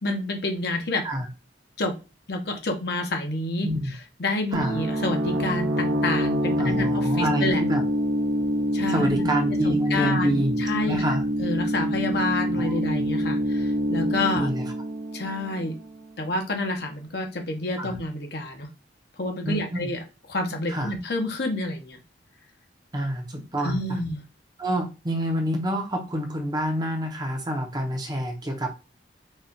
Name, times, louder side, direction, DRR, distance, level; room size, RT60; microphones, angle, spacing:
voice 1, 0.0-1.0 1.8-1.9 2.3-3.7 4.2-7.6 8.7-9.3 9.6-11.0 11.4-14.5 15.1-15.8 16.2-18.7 19.2-20.0 20.3-22.0 23.6-24.2, left 2 dB, 60° left, 3 dB, 0.9 m, -28 dB
voice 2, 3.6-3.9 4.5-4.8 6.6-7.8 8.9-10.6 10.8-11.2 12.6-12.7 14.3-14.7 17.8-17.9 19.4-19.9 20.7-20.9 22.9-24.0 24.6-28.8, equal, 20° right, 3 dB, 0.7 m, -27 dB
sound 1, 4.5-16.0, equal, 65° right, 0.7 m, -26 dB
4.1 x 2.4 x 3.9 m, 0.30 s
head